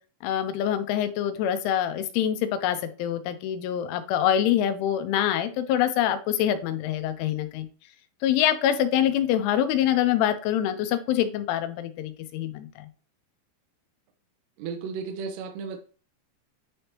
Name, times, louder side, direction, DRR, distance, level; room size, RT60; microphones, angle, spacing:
voice 1, 0.2-7.7 8.2-12.9, left 10 dB, 90° left, 10 dB, 3.3 m, -25 dB
voice 2, 14.6-15.8, right 5 dB, 80° right, 4 dB, 2.7 m, -34 dB
9.7 x 3.5 x 2.9 m, 0.38 s
omnidirectional pair, 5.4 m